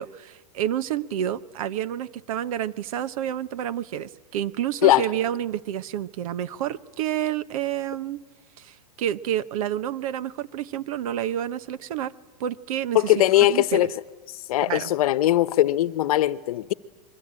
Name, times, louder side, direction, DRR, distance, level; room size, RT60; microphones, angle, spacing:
voice 1, 0.0-8.2 8.6-12.1 12.4-13.2 13.5-13.9 14.6-14.9, right 11 dB, 60° right, 1.1 m, -29 dB
voice 2, 12.9-13.9 14.5-16.7, left 14 dB, 60° left, 1.0 m, -20 dB
27.0 x 23.0 x 8.9 m
hypercardioid pair, 140°, 21 cm